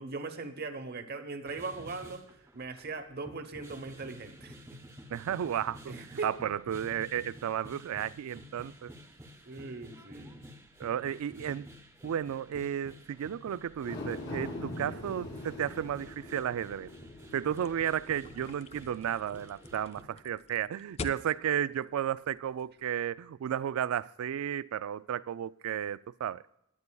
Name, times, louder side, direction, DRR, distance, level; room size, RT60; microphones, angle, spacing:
voice 1, 0.0-4.8 5.9-6.3 9.5-10.3, right 3 dB, 45° right, 0.9 m, -40 dB
sound 1, 1.5-20.0, equal, 10° right, 0.9 m, -51 dB
voice 2, 5.1-8.9 10.8-11.7 12.0-16.9 17.3-26.4, right 9 dB, 75° right, 0.3 m, -33 dB
sound 2, 13.8-20.3 20.7-20.8, left 1 dB, 50° left, 2.1 m, -44 dB
sound 3, 17.6-22.9, left 4 dB, 30° left, 0.3 m, -46 dB
22.0 x 9.4 x 2.3 m
head